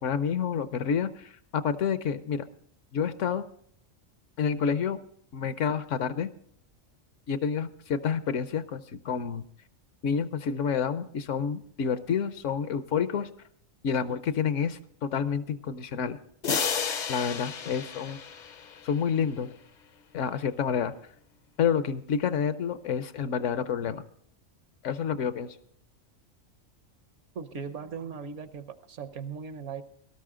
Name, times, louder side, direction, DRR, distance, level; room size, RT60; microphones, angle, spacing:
voice 1, 0.0-2.4 2.9-3.5 4.4-5.0 5.3-6.3 7.3-9.4 10.0-13.3 13.8-16.2 17.1-18.2 18.8-19.6 20.1-21.0 21.6-24.0 24.8-25.5, left 7 dB, 70° left, 13 dB, 1.0 m, -29 dB
sound 1, 16.4-19.1, left 6 dB, 50° left, 0.6 m, -32 dB
voice 2, 27.3-29.8, right 6 dB, 65° right, 12 dB, 1.1 m, -38 dB
18.0 x 12.5 x 3.7 m, 0.64 s
omnidirectional pair, 1.4 m